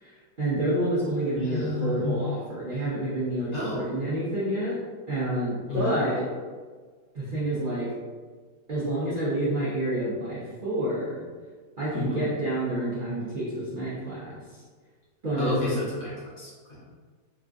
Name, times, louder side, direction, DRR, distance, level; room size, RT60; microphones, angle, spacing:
voice 1, 0.0-4.8 5.1-6.2 7.1-7.9 8.7-11.2 11.8-14.4 15.2-15.7, right 1 dB, 90° right, -9 dB, 0.4 m, -28 dB
voice 2, 1.3-2.1 3.5-3.8 5.7-6.0 11.9-12.2 15.4-16.8, left 2 dB, 55° left, -6 dB, 1.3 m, -30 dB
3.5 x 2.3 x 2.5 m, 1.5 s
omnidirectional pair, 1.8 m